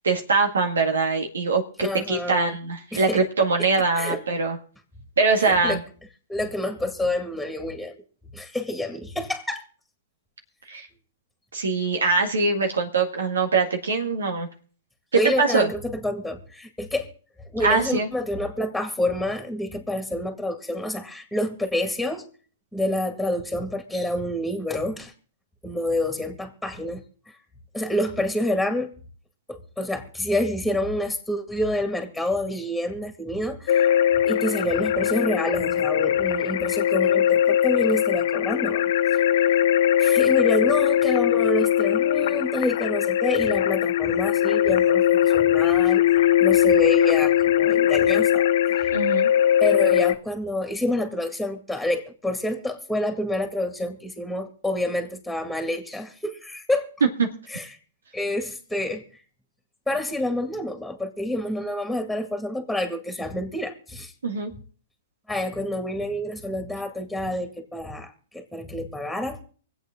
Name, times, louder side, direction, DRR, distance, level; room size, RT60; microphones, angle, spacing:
voice 1, 0.0-4.6 5.2-5.8 10.7-10.9 11.5-14.5 15.4-15.7 17.6-18.1 48.9-49.3 64.2-64.5, right 4 dB, 90° right, 4 dB, 1.9 m, -23 dB
voice 2, 1.8-2.6 2.9-3.2 4.0-4.2 5.4-5.8 6.3-7.9 8.3-9.6 15.1-17.1 17.5-22.3 22.7-25.1 25.6-27.0 27.7-28.9 29.5-33.9 34.3-38.8 39.1-39.6 40.0-49.0 49.6-56.9 57.5-57.8 58.1-59.0 59.9-64.1 65.3-69.4, left 1 dB, ahead, 5 dB, 2.1 m, -28 dB
sound 1, 33.7-50.1, left 11 dB, 60° left, 0.5 m, -20 dB
24.5 x 8.3 x 3.7 m, 0.43 s
hypercardioid pair, 125°, 0 cm